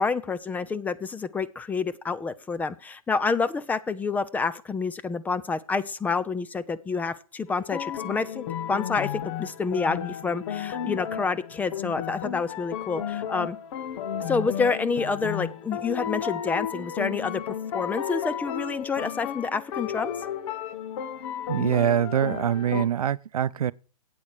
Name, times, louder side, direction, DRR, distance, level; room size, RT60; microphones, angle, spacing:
voice 1, 0.0-13.6 14.3-20.1, left 4 dB, 10° left, 0.4 m, -28 dB
sound 1, 7.5-22.8, left 9 dB, 55° left, 1.1 m, -33 dB
voice 2, 21.5-23.7, right 10 dB, 85° right, 0.5 m, -24 dB
8.6 x 8.5 x 6.5 m
hypercardioid pair, 130°, 18 cm